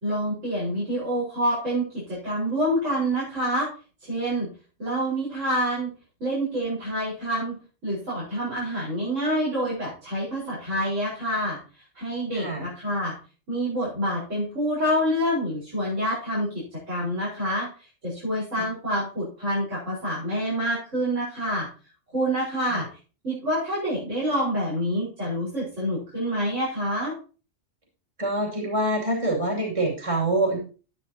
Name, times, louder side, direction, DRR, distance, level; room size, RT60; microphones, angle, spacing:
voice 1, 0.0-3.7 4.1-4.5 4.8-5.9 6.2-7.6 7.8-11.6 12.0-13.1 13.5-17.7 18.0-21.7 22.1-22.9 23.2-27.2, equal, 80° right, -7 dB, 5.1 m, -27 dB
voice 2, 12.3-12.6 18.5-18.6 22.6-22.8 28.2-30.6, right 1 dB, 25° right, -1 dB, 2.8 m, -25 dB
12.0 x 9.9 x 2.8 m, 0.35 s
omnidirectional pair, 1.3 m